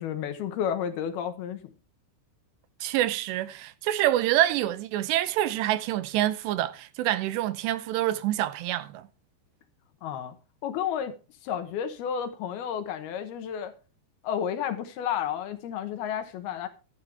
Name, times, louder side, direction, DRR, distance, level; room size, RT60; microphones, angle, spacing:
voice 1, 0.0-1.6 10.0-10.3 10.6-11.1 11.4-13.7 14.2-16.7, left 8 dB, 70° left, 2.8 m, -31 dB
voice 2, 2.8-9.1, right 13 dB, 80° right, 2.8 m, -26 dB
12.5 x 12.5 x 3.3 m
omnidirectional pair, 5.1 m